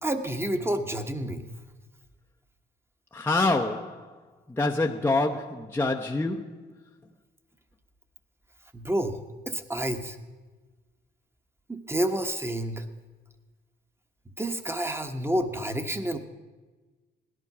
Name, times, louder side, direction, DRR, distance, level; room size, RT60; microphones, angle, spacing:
voice 1, 0.0-1.4 8.7-9.2 9.5-10.2 11.7-12.8 14.4-16.2, right 1 dB, 10° right, 1.2 m, -29 dB
voice 2, 3.1-4.1 4.6-6.6, left 2 dB, 10° left, 0.8 m, -26 dB
17.0 x 11.0 x 6.0 m
cardioid pair, 90°, 20 cm